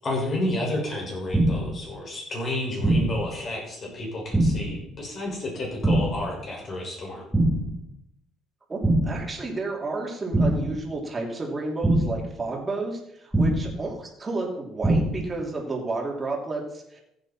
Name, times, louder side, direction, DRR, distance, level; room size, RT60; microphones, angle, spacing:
voice 1, 0.0-7.2, left 1 dB, 35° left, -2 dB, 5.8 m, -31 dB
sound 1, 1.3-1.8 2.8-3.3 4.3-4.8 5.8-6.3 7.3-7.8 8.8-9.3 10.3-10.8 11.8-12.3 13.3-13.8 14.8-15.3, right 1 dB, 5° right, 2.6 m, -23 dB
voice 2, 8.7-17.0, right 2 dB, 20° right, -1 dB, 3.2 m, -31 dB
14.5 x 8.9 x 4.4 m, 0.77 s
cardioid pair, 125°, 0 cm